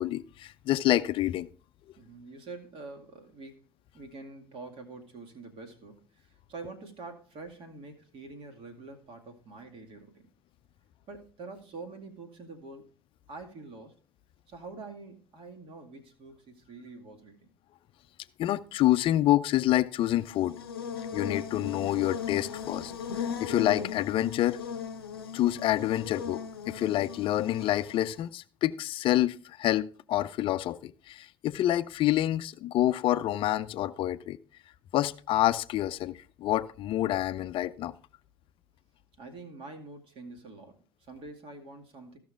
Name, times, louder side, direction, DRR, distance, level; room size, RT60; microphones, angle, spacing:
voice 1, 0.0-1.5 18.4-20.6 21.1-24.6 25.3-34.4 34.9-37.9, left 14 dB, 45° left, 0.5 m, -27 dB
voice 2, 2.0-3.6 3.9-10.3 11.1-12.9 13.3-14.0 14.5-17.5 22.5-22.8 39.2-42.2, right 3 dB, 45° right, 2.1 m, -46 dB
Buzz, 20.1-28.3, left 7 dB, 80° left, 0.7 m, -38 dB
15.5 x 6.0 x 3.5 m
figure-of-eight pair, 60°, 13 cm